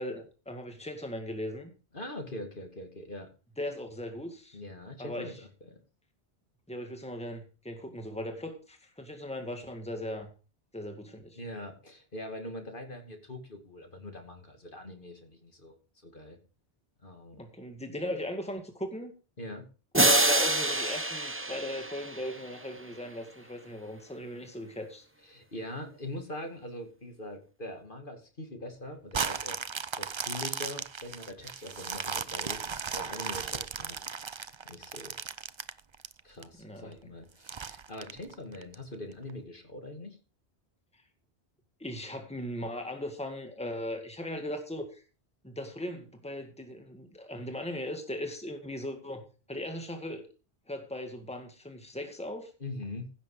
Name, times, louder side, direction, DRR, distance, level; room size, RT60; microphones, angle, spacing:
voice 1, 0.0-1.7 3.6-4.6 5.0-5.3 6.7-10.3 10.7-11.4 17.4-19.1 19.9-25.0 36.6-36.9 41.8-45.0 45.4-50.2 50.7-52.5, left 1 dB, 5° left, 5 dB, 2.0 m, -38 dB
voice 2, 1.9-3.3 4.5-5.8 11.4-15.7 16.0-16.4 17.0-17.4 19.4-19.7 25.2-29.6 30.0-34.0 34.7-35.1 36.2-40.2 52.6-53.1, left 1 dB, 50° left, 5 dB, 2.6 m, -42 dB
sound 1, 19.9-22.8, right 2 dB, 10° right, 0.9 m, -27 dB
sound 2, 29.1-36.4 36.9-37.0 37.5-38.7 39.3-39.4, right 6 dB, 35° right, 0.5 m, -36 dB
16.0 x 7.2 x 4.9 m, 0.35 s
omnidirectional pair, 1.1 m